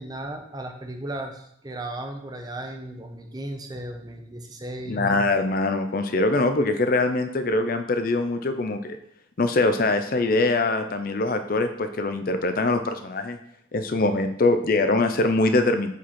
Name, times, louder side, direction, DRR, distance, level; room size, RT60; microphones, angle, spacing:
voice 1, 0.0-5.1, right 1 dB, 20° right, 4 dB, 0.7 m, -35 dB
voice 2, 4.9-9.0 9.4-13.4 13.7-15.9, left 2 dB, 45° left, 8 dB, 0.5 m, -23 dB
5.3 x 5.2 x 4.2 m, 0.71 s
head